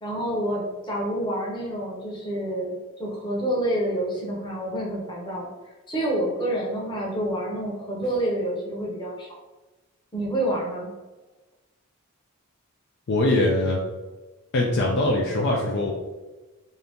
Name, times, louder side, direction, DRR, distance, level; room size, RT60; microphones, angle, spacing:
voice 1, 0.0-2.7 3.0-5.5 5.9-9.3 10.1-10.9, right 1 dB, 20° left, -4 dB, 0.8 m, -28 dB
voice 2, 13.1-13.8 14.5-15.9, left 1 dB, 50° left, -1 dB, 0.4 m, -22 dB
2.7 x 2.7 x 3.5 m, 1.2 s
head